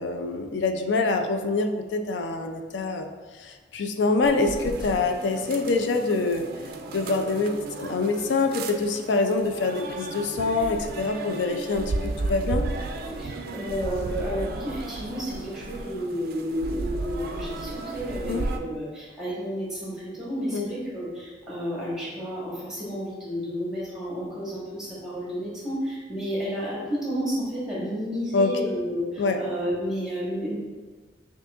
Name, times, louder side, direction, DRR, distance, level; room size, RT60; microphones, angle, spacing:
voice 1, 0.0-3.1 3.4-6.5 6.9-12.7 18.3-18.5 20.5-20.7 28.3-28.5 29.2-29.4, left 3 dB, 70° left, 5 dB, 0.4 m, -25 dB
sound 1, 4.2-18.6, right 2 dB, 55° right, 0.3 m, -34 dB
voice 2, 13.2-30.5, equal, 5° right, -7 dB, 1.3 m, -31 dB
6.0 x 2.8 x 2.4 m, 1.4 s
head